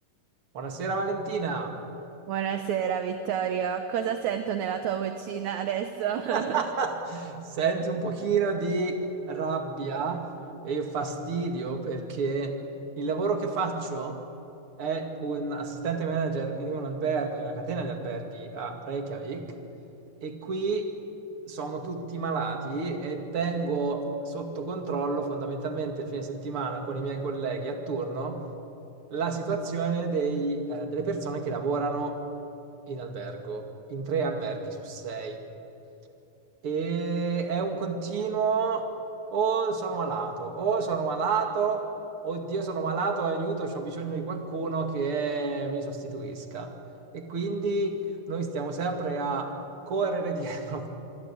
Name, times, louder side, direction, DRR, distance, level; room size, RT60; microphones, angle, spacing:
voice 1, 0.5-1.7 6.3-9.0 9.3-10.3 10.6-12.5 13.0-14.2 14.8-19.5 20.2-20.9 21.5-28.4 29.1-32.2 32.9-33.6 33.9-35.4 36.6-38.9 39.3-41.9 42.2-46.7 47.1-48.0 48.3-49.5 49.9-50.9, right 4 dB, 40° right, 4 dB, 2.9 m, -30 dB
voice 2, 2.3-6.6, right 8 dB, 65° right, 7 dB, 2.2 m, -29 dB
26.5 x 23.5 x 8.7 m, 3.0 s
omnidirectional pair, 4.0 m